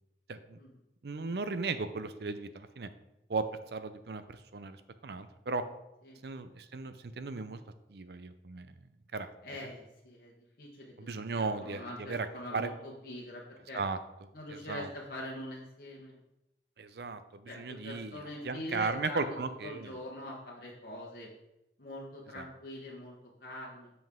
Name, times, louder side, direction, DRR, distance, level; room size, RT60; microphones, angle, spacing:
voice 1, 1.0-2.9 3.3-4.8 5.0-5.6 6.2-7.6 7.9-8.7 9.1-9.3 11.0-12.3 12.5-12.7 13.7-14.0 14.5-14.9 16.8-19.9 22.3-22.5, right 4 dB, 65° right, 11 dB, 0.5 m, -36 dB
voice 2, 9.4-10.3 10.6-11.1 11.4-13.8 14.3-16.2 17.5-21.3 21.8-23.9, left 1 dB, 55° left, -3 dB, 1.1 m, -44 dB
7.9 x 5.4 x 3.6 m, 0.89 s
head